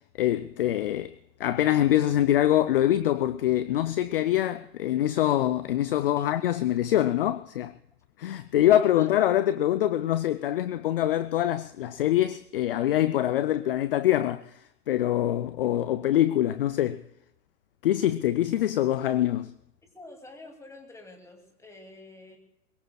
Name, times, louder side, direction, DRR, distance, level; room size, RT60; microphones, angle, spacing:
voice 1, 0.2-1.1 1.4-7.8 8.2-14.5 14.9-17.0 17.8-19.5, left 12 dB, 35° left, 0.4 m, -24 dB
voice 2, 8.6-9.1 19.8-22.4, left 2 dB, 5° left, 2.5 m, -48 dB
22.5 x 21.5 x 2.3 m
hypercardioid pair, 130°, 49 cm